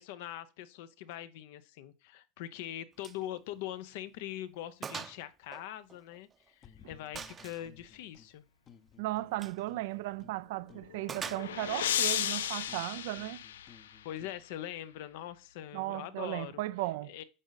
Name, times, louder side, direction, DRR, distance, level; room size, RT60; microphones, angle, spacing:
voice 1, 0.0-8.4 14.0-16.6 17.0-17.2, left 12 dB, 70° left, 0.8 m, -42 dB
Gunshot gunfire, 3.0-3.2 3.6-3.7 4.2-4.3 4.8-5.2 5.5-6.5 7.2-7.7 9.3-9.6 11.1-11.8, right 6 dB, 30° right, 0.6 m, -42 dB
sound 1, 6.6-8.3 8.7-10.4 10.7-14.4, left 7 dB, 40° left, 0.8 m, -58 dB
voice 2, 9.0-13.4 15.7-17.1, right 18 dB, 70° right, 0.4 m, -36 dB
sound 2, 10.7-14.1, left 10 dB, 90° left, 0.4 m, -34 dB
9.0 x 5.1 x 4.1 m
hypercardioid pair, 100°, 0 cm